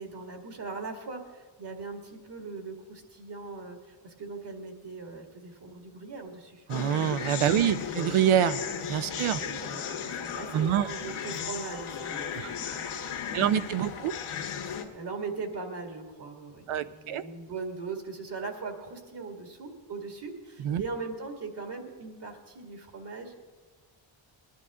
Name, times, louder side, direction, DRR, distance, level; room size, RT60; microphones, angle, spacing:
voice 1, 0.0-3.8 4.0-6.6 7.5-8.1 9.1-14.0 14.6-23.3, right 4 dB, 55° right, 4 dB, 2.2 m, -40 dB
sound 1, 6.7-14.8, left 7 dB, 75° left, 1.5 m, -36 dB
voice 2, 6.7-8.6 8.9-9.4 10.5-10.9 12.4-12.5 13.3-14.2 16.7-17.2 20.6-20.8, right 10 dB, 75° right, 13 dB, 0.7 m, -26 dB
20.0 x 11.0 x 3.7 m, 1.3 s
cardioid pair, 80°, 50 cm